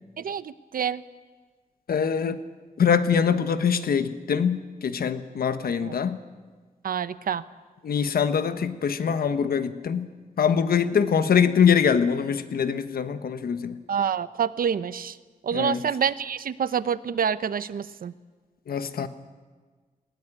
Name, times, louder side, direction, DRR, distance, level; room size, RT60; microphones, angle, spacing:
voice 1, 0.2-1.0 5.8-6.0 6.8-7.4 13.9-15.2 15.4-18.1, right 7 dB, 75° right, 15 dB, 0.8 m, -27 dB
voice 2, 1.9-2.4 2.8-6.2 7.8-10.1 10.4-13.8 15.5-15.8 18.7-19.1, left 7 dB, 85° left, 11 dB, 1.3 m, -23 dB
20.0 x 18.5 x 9.9 m, 1.4 s
wide cardioid pair, 115°, 15 cm